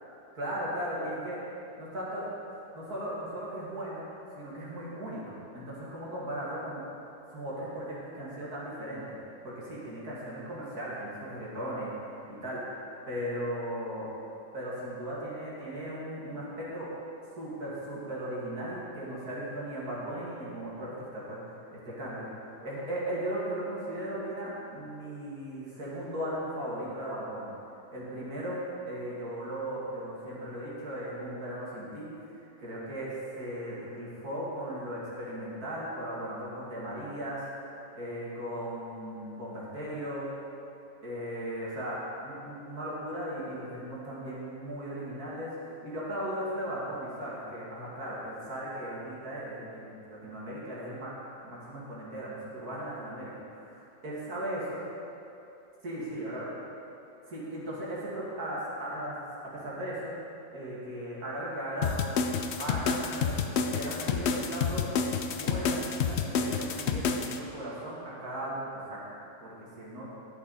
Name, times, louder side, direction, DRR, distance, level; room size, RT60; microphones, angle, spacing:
voice 1, 0.3-1.4 1.8-2.3 2.5-6.8 7.3-9.0 9.4-12.6 13.1-14.1 14.5-16.9 17.4-21.4 21.7-27.5 27.9-32.1 32.3-37.4 38.0-40.3 41.0-45.5 45.8-51.1 51.4-54.8 55.8-56.5 57.3-59.2 59.5-60.2 60.5-62.0 62.5-63.3 63.7-64.9 65.3-70.1, right 1 dB, 65° right, -7 dB, 2.5 m, -37 dB
sound 1, 61.8-67.4, left 6 dB, 80° left, 0.6 m, -29 dB
11.5 x 6.9 x 4.1 m, 2.8 s
omnidirectional pair, 1.7 m